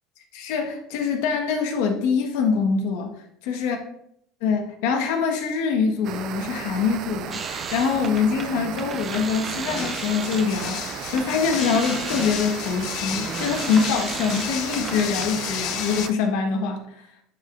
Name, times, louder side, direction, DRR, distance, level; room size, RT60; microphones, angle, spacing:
voice 1, 0.3-3.1 3.4-3.8 4.4-16.9, left 5 dB, 80° left, 3 dB, 1.4 m, -24 dB
sound 1, 6.0-16.1, right 10 dB, 50° right, 0.4 m, -35 dB
sound 2, 7.3-10.8 11.1-15.4, right 4 dB, 25° right, 0.8 m, -34 dB
sound 3, 9.7-16.1, left 12 dB, 60° left, 0.5 m, -33 dB
10.5 x 4.8 x 2.6 m, 0.74 s
cardioid pair, 135°, 0 cm